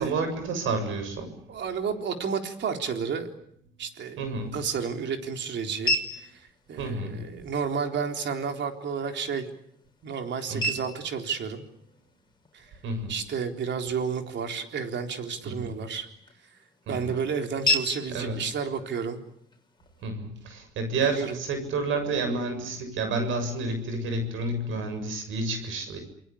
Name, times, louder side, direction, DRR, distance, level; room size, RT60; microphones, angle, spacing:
voice 1, 0.0-1.3 4.2-4.6 6.8-7.3 10.5-10.7 12.8-13.1 15.4-15.7 16.9-17.1 18.1-18.5 20.0-26.0, right 3 dB, 85° right, 8 dB, 7.2 m, -30 dB
voice 2, 1.5-3.3 3.8-4.2 4.5-9.5 10.0-11.6 12.5-12.7 13.1-16.1 16.9-19.2 21.0-21.4, right 6 dB, 65° right, 5 dB, 3.9 m, -31 dB
sound 1, 4.1-20.1, left 1 dB, 20° left, 5.8 m, -37 dB
29.0 x 21.0 x 8.6 m, 0.70 s
cardioid pair, 90°, 20 cm